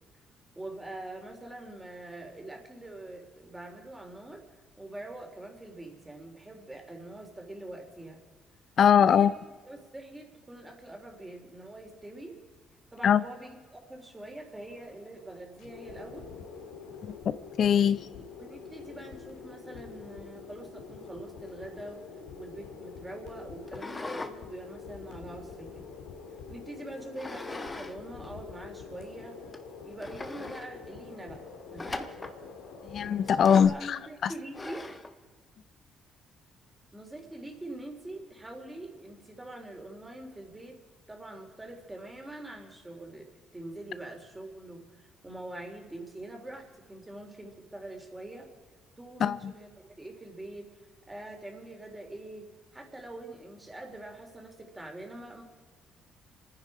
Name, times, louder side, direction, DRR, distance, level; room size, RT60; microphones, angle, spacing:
voice 1, 0.6-4.4 4.8-8.2 9.0-9.3 9.6-12.4 12.9-16.3 18.4-22.0 22.4-25.8 26.5-29.4 29.8-32.2 33.2-34.9 36.9-40.8 41.1-43.3 43.5-48.5 49.0-50.7 51.1-55.4, right 1 dB, 15° right, 3.7 m, -44 dB
voice 2, 8.8-9.3 13.0-13.2 17.3-18.1 32.9-34.3 49.2-49.5, left 8 dB, 60° left, 0.4 m, -22 dB
sound 1, 14.0-33.7, left 5 dB, 85° left, 2.1 m, -46 dB
sound 2, 23.7-24.4 24.8-26.1 27.2-28.0 28.2-28.3 29.0-29.1 29.5-29.6 30.0-30.7 31.8-32.4 33.4-33.8 34.5-35.1, left 2 dB, 25° left, 1.2 m, -40 dB
27.0 x 10.0 x 5.0 m
supercardioid pair, 75°, 0 cm